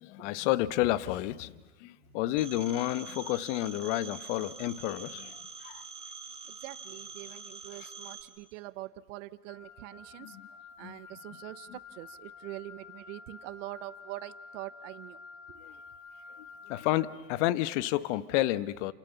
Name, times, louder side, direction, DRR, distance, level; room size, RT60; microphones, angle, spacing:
voice 1, 0.0-1.5 1.8-5.8 10.2-10.4 10.8-11.0 15.6-15.7 16.4-18.9, left 15 dB, 50° left, 1.2 m, -31 dB
Telephone, 2.4-8.2, right 4 dB, 10° right, 3.3 m, -45 dB
voice 2, 6.5-10.4 10.8-15.2 15.5-15.6, right 18 dB, 55° right, 1.2 m, -44 dB
Wind instrument woodwind instrument, 9.5-17.2, left 4 dB, 30° left, 3.2 m, -50 dB
30.0 x 28.0 x 7.0 m
hypercardioid pair, 110°, 44 cm